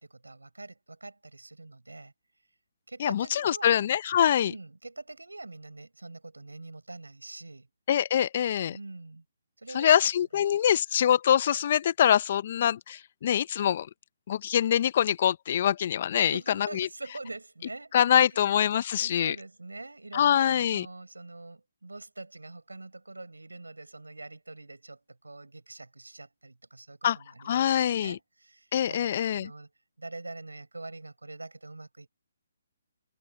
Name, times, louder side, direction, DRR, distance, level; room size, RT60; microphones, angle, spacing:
voice 1, 0.0-2.1 2.9-3.9 4.4-7.7 8.7-9.2 9.6-10.0 16.1-18.5 19.0-29.7 30.0-32.1, right 2 dB, 85° right, 6.8 m, -44 dB
voice 2, 3.0-4.5 7.9-8.8 9.7-13.9 14.3-16.9 17.9-19.3 20.1-20.8 27.0-27.2 27.4-28.2 28.7-29.5, left 10 dB, 45° left, 1.1 m, -24 dB
figure-of-eight pair, 140°, 0 cm